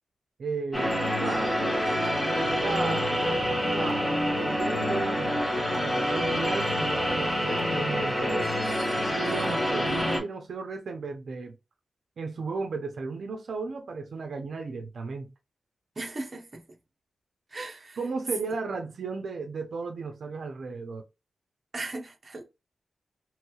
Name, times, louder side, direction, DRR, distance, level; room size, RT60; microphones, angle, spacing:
voice 1, 0.4-0.9 1.2-1.5 2.3-3.2 3.7-8.5 9.0-11.5 12.2-15.3 18.0-21.0, right 4 dB, 60° right, 0.5 m, -35 dB
sound 1, 0.7-10.2, equal, 20° left, 1.2 m, -27 dB
voice 2, 9.2-9.6 16.0-16.6 17.5-18.0 21.7-22.4, right 2 dB, 30° right, 0.7 m, -38 dB
3.1 x 3.0 x 2.3 m
wide cardioid pair, 165°, 0 cm